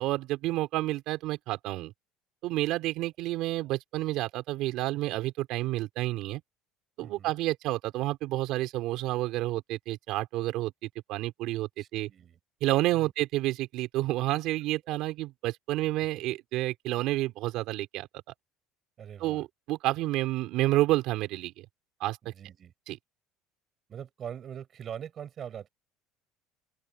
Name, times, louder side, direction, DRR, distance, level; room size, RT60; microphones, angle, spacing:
voice 1, 0.0-1.9 2.4-6.4 7.0-12.1 12.6-18.1 19.2-21.7 22.0-22.3 22.9-23.0, right 17 dB, 55° right, 3.7 m, -30 dB
voice 2, 7.0-7.4 11.8-12.4 12.9-13.1 14.7-15.0 19.0-19.4 22.2-22.7 23.9-25.7, right 9 dB, 30° right, 5.8 m, -43 dB
open air
cardioid pair, 170°, 0 cm